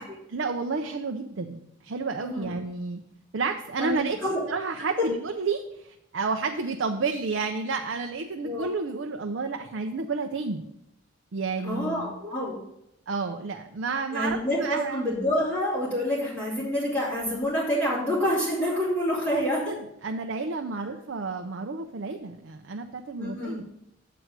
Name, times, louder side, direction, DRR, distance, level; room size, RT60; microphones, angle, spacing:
voice 1, 0.0-3.0 3.3-4.2 4.5-10.6 11.3-12.1 13.1-15.0 19.3-19.8 20.0-23.6, right 4 dB, 70° right, 4 dB, 0.6 m, -31 dB
voice 2, 3.8-4.4 8.4-8.7 11.6-12.6 14.1-19.7 23.2-23.6, equal, 15° left, -12 dB, 3.0 m, -27 dB
7.8 x 4.7 x 6.4 m, 0.79 s
head